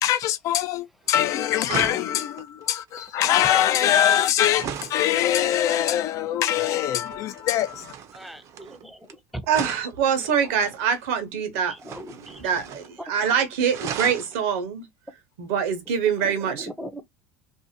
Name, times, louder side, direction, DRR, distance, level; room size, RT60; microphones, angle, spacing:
voice 1, 0.0-7.9, left 11 dB, 50° left, 0.4 m, -23 dB
sound 1, 1.1-1.3 1.6-5.1 7.0-9.1 9.5-11.1 11.8-13.0 13.2-13.3 13.6-14.4 16.2-16.3, right 8 dB, 50° right, 0.5 m, -37 dB
voice 2, 8.1-9.0 11.8-12.5 16.2-16.3 16.6-17.0, equal, ahead, 0.6 m, -40 dB
voice 3, 9.5-11.7 12.1-14.9 15.4-16.7, right 7 dB, 75° right, 0.9 m, -24 dB
2.6 x 2.1 x 2.7 m
hypercardioid pair, 90°, 7 cm